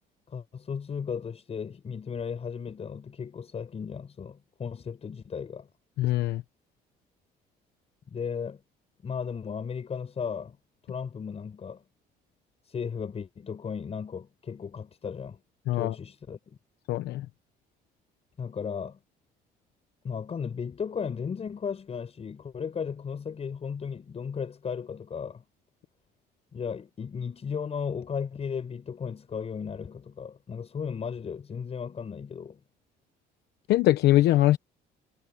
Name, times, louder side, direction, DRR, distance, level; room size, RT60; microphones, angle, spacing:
voice 1, 0.3-5.7 8.1-8.6 9.0-10.6 10.9-11.8 12.6-15.4 15.7-16.6 18.4-19.0 20.0-25.4 26.5-32.6, left 6 dB, 35° left, 6.1 m, -35 dB
voice 2, 6.0-6.4 15.7-15.9 16.9-17.2 33.7-34.6, left 15 dB, 80° left, 1.0 m, -22 dB
cardioid pair, 110°, 17 cm